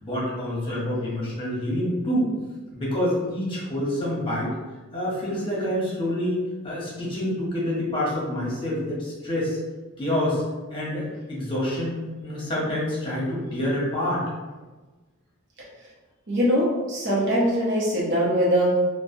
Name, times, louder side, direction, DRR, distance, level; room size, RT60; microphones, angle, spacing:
voice 1, 0.0-2.3 2.7-4.6 4.9-9.6 10.0-10.4 10.7-14.2, left 1 dB, 25° left, -6 dB, 1.0 m, -27 dB
voice 2, 16.3-18.8, equal, 55° right, -6 dB, 0.7 m, -22 dB
3.0 x 2.2 x 2.6 m, 1.2 s
head